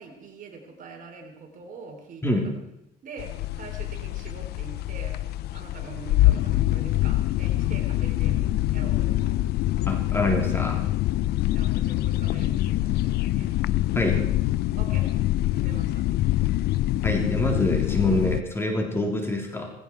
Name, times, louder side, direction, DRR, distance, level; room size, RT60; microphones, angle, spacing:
voice 1, 0.0-2.2 3.0-5.2 5.5-9.5 11.5-13.5 14.8-15.1 15.5-16.0, right 4 dB, 55° right, 3 dB, 3.9 m, -43 dB
sound 1, 3.2-18.4, left 15 dB, 75° left, 0.5 m, -25 dB
voice 2, 9.9-10.9 13.9-14.2 17.0-19.7, left 1 dB, 15° left, 1 dB, 3.5 m, -26 dB
18.0 x 16.5 x 4.7 m, 0.82 s
cardioid pair, 110°, 17 cm